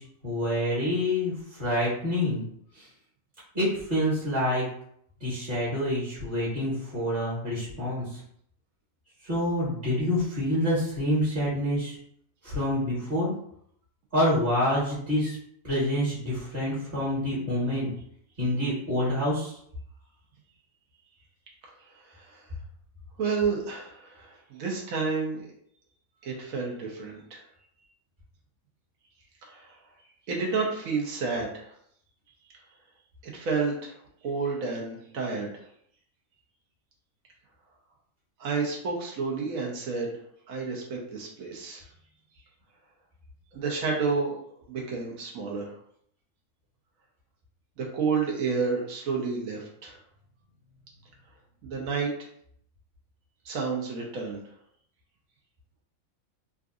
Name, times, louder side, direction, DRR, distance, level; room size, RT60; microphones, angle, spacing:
voice 1, 0.0-2.4 2.7-2.9 3.5-4.6 5.2-8.2 9.2-12.0 12.4-13.3 14.1-15.4 15.6-17.9 18.4-19.6, left 1 dB, 40° right, -7 dB, 1.6 m, -27 dB
voice 2, 22.0-22.4 23.2-25.5 26.2-27.4 29.4-29.7 30.3-31.7 33.3-33.9 34.2-35.5 38.4-40.2 40.5-41.8 43.5-44.4 44.7-45.7 47.8-50.0 51.6-52.1 53.4-54.4, right 4 dB, 80° right, -1 dB, 1.2 m, -30 dB
3.8 x 2.4 x 2.5 m, 0.67 s
omnidirectional pair, 1.4 m